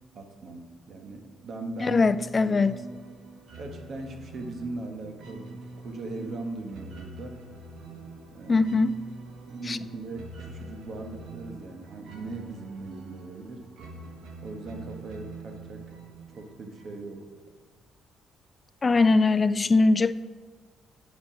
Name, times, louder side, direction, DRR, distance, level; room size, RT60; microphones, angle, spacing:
voice 1, 0.1-2.0 2.4-2.6 3.6-7.4 8.3-8.7 9.5-13.9 14.4-15.8 16.4-17.2, right 2 dB, 55° right, 4 dB, 1.2 m, -39 dB
voice 2, 1.8-2.8 8.5-9.0 9.7-9.8 18.8-20.1, left 3 dB, 30° left, 15 dB, 0.3 m, -21 dB
sound 1, 1.8-17.3, right 2 dB, 80° right, 1.2 m, -45 dB
9.0 x 5.3 x 4.9 m, 1.5 s
cardioid pair, 90°, 0 cm